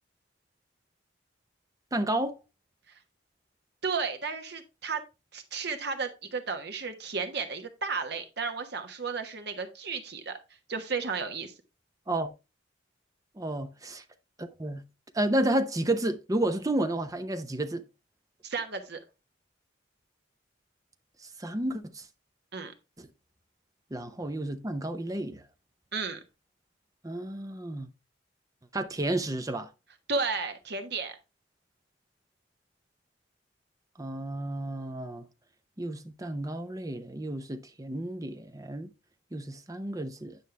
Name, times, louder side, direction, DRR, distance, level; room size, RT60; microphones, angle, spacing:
voice 1, 1.9-2.4 12.1-12.3 13.4-14.0 14.4-14.8 15.1-17.8 21.4-22.0 23.0-23.1 23.9-25.4 27.0-27.9 28.7-29.7 34.0-35.3 35.8-38.9 39.3-40.4, right 1 dB, 20° right, 0.7 m, -31 dB
voice 2, 3.8-5.0 5.3-10.3 10.7-11.5 18.4-19.0 22.5-22.7 25.9-26.2 30.1-31.2, right 4 dB, 60° right, 1.2 m, -33 dB
9.3 x 5.5 x 3.3 m
head